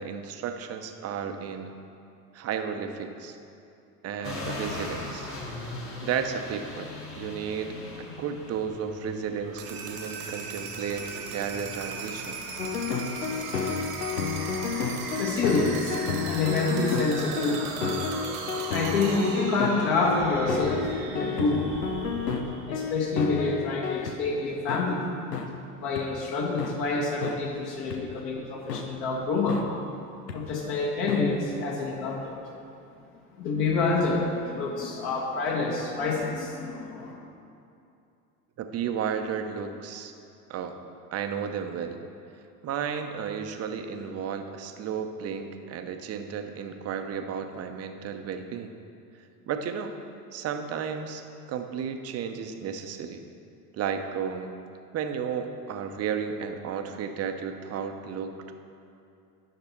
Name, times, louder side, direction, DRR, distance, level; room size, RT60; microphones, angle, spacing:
voice 1, 0.0-1.7 2.3-3.4 4.0-5.3 6.0-12.4 38.6-40.1 40.5-40.7 41.1-42.0 42.6-48.7 49.5-49.9 50.3-51.2 51.5-53.2 53.7-54.5 54.9-58.3, right 7 dB, 30° right, 6 dB, 0.8 m, -33 dB
sound 1, 4.2-20.8, left 2 dB, 30° left, 1.6 m, -43 dB
sound 2, 9.4-23.3, right 4 dB, 70° right, 1.4 m, -37 dB
sound 3, 12.6-24.1 24.7-24.8 25.3-25.5 26.0-26.1 26.6-26.7 27.2-27.4 27.9-28.0 28.7-28.8 29.5-29.6 30.3-30.4 31.1-31.2, left 5 dB, 90° left, 0.8 m, -31 dB
voice 2, 15.2-16.0 16.3-17.7 18.7-21.7 22.7-25.0 25.8-29.6 30.3-32.3 33.4-37.1, left 3 dB, 50° left, -3 dB, 2.1 m, -27 dB
9.9 x 6.0 x 4.4 m, 2.6 s
hypercardioid pair, 80°, 46 cm